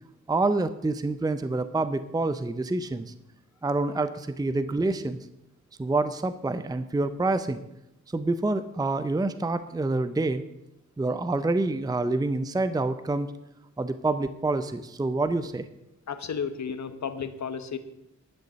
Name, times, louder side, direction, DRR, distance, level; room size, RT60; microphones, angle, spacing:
voice 1, 0.3-3.1 3.6-5.2 5.8-7.6 8.1-10.4 11.0-13.3 13.8-15.7, right 2 dB, 15° right, 12 dB, 0.6 m, -27 dB
voice 2, 16.1-17.8, left 6 dB, 65° left, 10 dB, 1.1 m, -33 dB
11.5 x 6.7 x 7.7 m, 0.87 s
wide cardioid pair, 85°, 30 cm